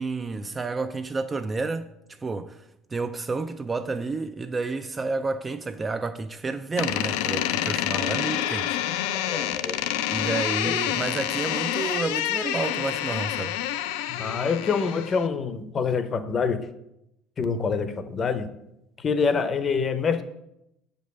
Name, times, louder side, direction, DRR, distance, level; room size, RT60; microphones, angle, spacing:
voice 1, 0.0-8.8 10.1-13.6, right 3 dB, 15° right, 0.3 m, -30 dB
Door, 6.8-15.3, left 12 dB, 85° left, 0.5 m, -28 dB
voice 2, 9.1-9.8 10.6-10.8 14.1-16.7 17.4-18.5 19.0-20.2, left 5 dB, 25° left, 0.7 m, -26 dB
7.3 x 5.3 x 6.8 m
cardioid pair, 155°, 0 cm